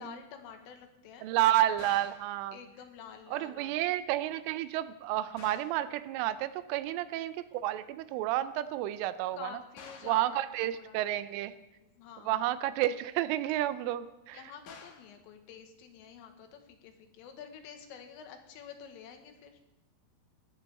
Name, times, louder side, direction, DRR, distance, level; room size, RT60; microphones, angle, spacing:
voice 1, 0.0-1.3 2.5-3.8 9.3-11.3 11.8-12.4 14.3-19.6, left 7 dB, 85° left, 5 dB, 4.0 m, -49 dB
voice 2, 1.2-2.6 3.3-9.5 10.0-11.5 12.3-14.4, right 13 dB, 85° right, 13 dB, 3.1 m, -30 dB
sound 1, 1.8-2.3 5.4-5.8 9.8-10.2 14.7-15.1, left 5 dB, 60° left, 2.0 m, -49 dB
20.5 x 15.5 x 3.5 m, 0.94 s
omnidirectional pair, 5.7 m